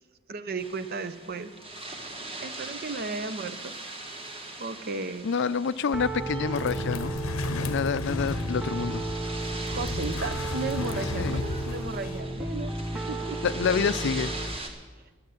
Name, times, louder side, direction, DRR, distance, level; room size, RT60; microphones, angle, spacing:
voice 1, 0.3-1.5 2.4-3.7 4.6-5.3 9.7-13.4, right 3 dB, 45° right, 12 dB, 0.7 m, -35 dB
sound 1, 0.6-14.7, right 2 dB, 25° right, 1.5 m, -41 dB
voice 2, 5.2-7.1 7.5-9.0 11.1-11.5 13.4-14.6, left 6 dB, 55° left, 16 dB, 0.4 m, -28 dB
Piano, 5.9-14.6, right 2 dB, 5° right, 0.5 m, -34 dB
sound 2, 6.5-12.2, left 2 dB, 80° left, 0.8 m, -35 dB
11.5 x 9.8 x 7.8 m, 1.3 s
head